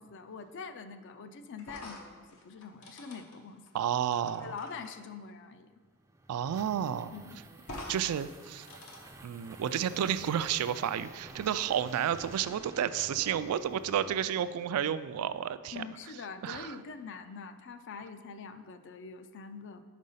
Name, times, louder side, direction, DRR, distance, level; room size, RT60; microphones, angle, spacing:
voice 1, 0.0-3.7 4.4-5.7 7.1-7.4 15.7-19.8, left 5 dB, 55° left, 10 dB, 0.4 m, -44 dB
sound 1, 1.6-4.9 6.4-6.5 6.8-6.9 7.6-8.0 8.3-10.6, left 1 dB, 75° left, 1.0 m, -48 dB
voice 2, 3.7-4.6 6.3-7.1 7.9-8.7 9.2-15.8 16.4-16.8, right 9 dB, 90° right, 14 dB, 0.3 m, -31 dB
sound 2, 5.8-14.7, right 2 dB, 15° right, 0.3 m, -51 dB
5.5 x 5.2 x 5.5 m, 1.5 s
head